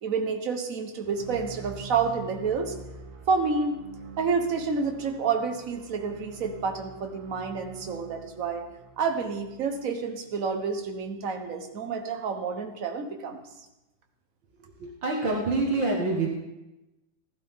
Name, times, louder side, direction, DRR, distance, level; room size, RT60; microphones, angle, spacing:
voice 1, 0.0-2.7 3.3-3.8 4.2-8.6 9.0-13.4, right 5 dB, 45° right, 5 dB, 1.4 m, -29 dB
sound 1, 1.0-11.1, right 4 dB, 85° right, 2.5 m, -46 dB
voice 2, 14.8-16.3, right 3 dB, 60° right, -2 dB, 2.4 m, -26 dB
16.0 x 11.5 x 3.7 m, 0.97 s
omnidirectional pair, 2.3 m